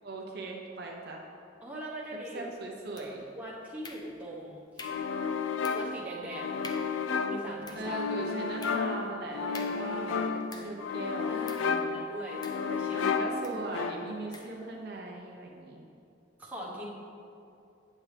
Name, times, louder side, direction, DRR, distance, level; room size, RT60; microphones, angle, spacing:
voice 1, 0.0-1.3 2.3-3.2 7.7-11.3 11.6-12.1 12.9-15.9, right 2 dB, 55° right, -1 dB, 0.7 m, -39 dB
voice 2, 1.6-2.5 3.4-4.6 5.7-6.6 7.2-8.0 11.3-13.1 16.4-16.9, right 1 dB, 10° right, -6 dB, 1.0 m, -41 dB
sound 1, 3.0-3.4 3.8-4.4 4.8-5.2 5.6-6.0 6.3-6.4 6.6-7.0 7.5-10.9 11.5-11.8 12.4-13.0 13.4-13.7 14.3-14.6, left 3 dB, 20° left, 0.4 m, -48 dB
sound 2, 4.8-14.3, left 5 dB, 80° left, 0.4 m, -32 dB
8.6 x 7.3 x 3.3 m, 2.6 s
head